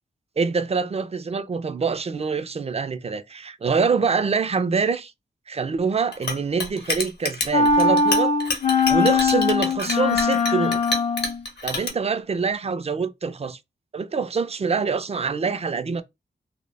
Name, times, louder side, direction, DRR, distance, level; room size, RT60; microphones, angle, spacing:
voice 1, 0.4-5.1 5.5-8.3 8.9-10.8 11.6-13.6 13.9-16.0, right 5 dB, 35° right, 0.3 m, -25 dB
Chink clink, 6.1-11.9, left 2 dB, 55° left, 0.8 m, -28 dB
sound 1, 7.5-11.4, left 4 dB, 40° left, 0.4 m, -21 dB
2.0 x 2.0 x 3.3 m
cardioid pair, 40°, 20 cm